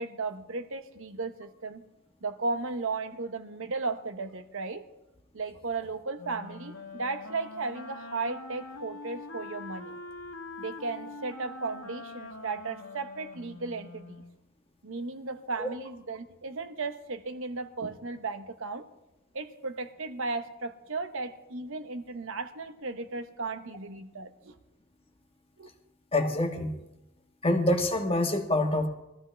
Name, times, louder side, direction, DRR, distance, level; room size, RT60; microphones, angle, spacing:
voice 1, 0.0-1.8 2.2-4.9 5.3-10.0 10.6-14.2 14.8-18.9 19.3-24.6 25.6-25.7, right 3 dB, 60° right, 8 dB, 1.0 m, -35 dB
Wind instrument woodwind instrument, 6.2-14.4, left 2 dB, 80° left, 1.6 m, -44 dB
voice 2, 26.1-26.7 27.4-28.9, left 1 dB, 25° left, 3 dB, 1.5 m, -26 dB
21.0 x 13.5 x 3.4 m, 0.92 s
head